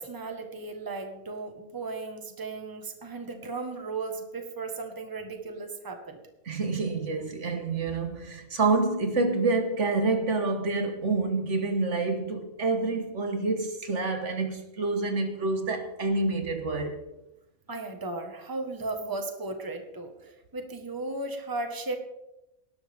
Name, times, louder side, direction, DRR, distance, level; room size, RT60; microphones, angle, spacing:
voice 1, 0.0-6.2 17.7-22.0, right 3 dB, 15° right, 1.3 m, -36 dB
voice 2, 6.4-17.0, right 3 dB, 60° right, 1.6 m, -27 dB
18.5 x 12.0 x 3.5 m
omnidirectional pair, 1.4 m